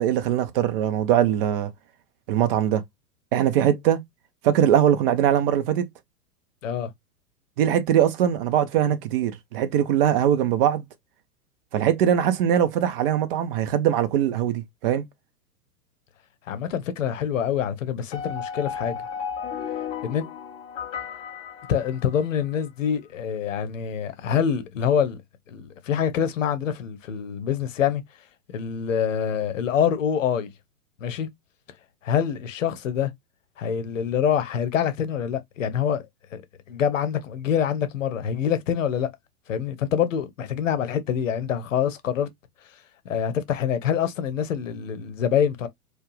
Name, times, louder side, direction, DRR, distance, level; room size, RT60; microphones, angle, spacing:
voice 1, 0.0-1.7 2.3-2.8 3.3-4.0 4.4-5.9 7.6-10.9 11.7-15.0, right 10 dB, 35° right, 0.8 m, -21 dB
voice 2, 16.5-19.0 20.0-20.3 21.7-25.2 25.5-28.0 28.5-30.5 31.0-31.3 32.0-33.1 33.6-36.0 36.3-36.4 36.7-39.1 39.5-42.3 43.0-45.7, left 8 dB, 55° left, 0.9 m, -25 dB
sound 1, 18.1-22.4, left 7 dB, 15° left, 0.5 m, -34 dB
4.4 x 2.4 x 3.1 m
figure-of-eight pair, 100°, 47 cm